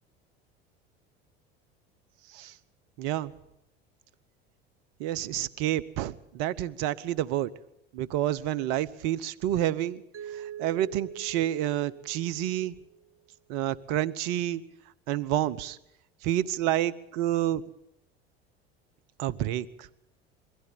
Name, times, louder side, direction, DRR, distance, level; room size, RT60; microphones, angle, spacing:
voice 1, 3.0-3.3 5.0-7.5 7.9-10.0 10.3-12.7 13.5-14.6 15.1-15.8 16.2-17.6 19.2-19.9, right 12 dB, 65° right, 18 dB, 1.1 m, -29 dB
Mallet percussion, 10.1-13.0, right 10 dB, 45° right, 1.5 m, -43 dB
22.5 x 16.0 x 8.7 m, 0.77 s
hypercardioid pair, 75°, 30 cm